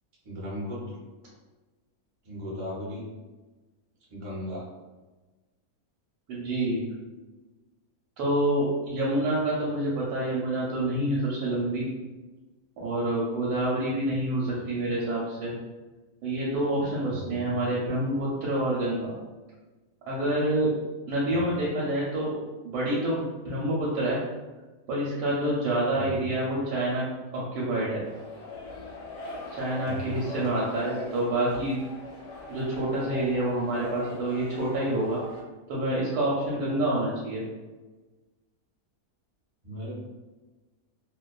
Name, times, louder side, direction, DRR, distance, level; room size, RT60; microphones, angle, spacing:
voice 1, 0.2-1.0 2.2-3.0 4.1-4.6 14.5-14.6 17.1-17.5 21.3-21.5 25.9-26.3 29.8-30.2 39.6-39.9, equal, 35° right, -6 dB, 0.5 m, -37 dB
voice 2, 6.3-6.8 8.2-11.9 12.8-15.5 16.2-19.1 20.1-20.7 21.1-22.3 22.6-24.2 24.9-27.0 27.3-28.0 29.6-31.8 32.5-35.2 35.7-37.4, right 1 dB, 90° right, -6 dB, 1.1 m, -27 dB
sound 1, 28.0-35.4, left 3 dB, 70° left, 0.8 m, -41 dB
2.4 x 2.3 x 2.2 m, 1.2 s
omnidirectional pair, 1.6 m